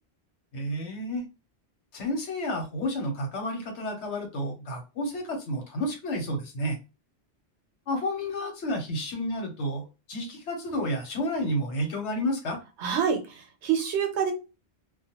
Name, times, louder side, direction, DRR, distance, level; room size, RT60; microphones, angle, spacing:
voice 1, 0.5-1.2 1.9-6.8 7.9-12.6, equal, 85° left, 2 dB, 1.1 m, -31 dB
voice 2, 12.8-14.3, right 7 dB, 85° right, 5 dB, 1.0 m, -27 dB
2.3 x 2.2 x 2.9 m, 0.28 s
omnidirectional pair, 1.1 m